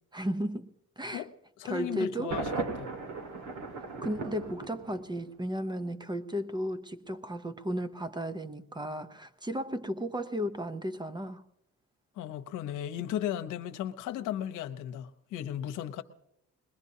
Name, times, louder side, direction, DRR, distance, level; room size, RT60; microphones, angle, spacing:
voice 1, 0.1-1.2 1.6-2.4 4.0-11.4, equal, 15° right, 0.7 m, -34 dB
voice 2, 1.6-2.5 2.8-2.9 12.2-16.0, left 11 dB, 90° left, 0.9 m, -35 dB
Thunder, 2.3-5.3, right 3 dB, 75° right, 1.9 m, -37 dB
21.5 x 20.5 x 2.8 m
cardioid pair, 90°, 30 cm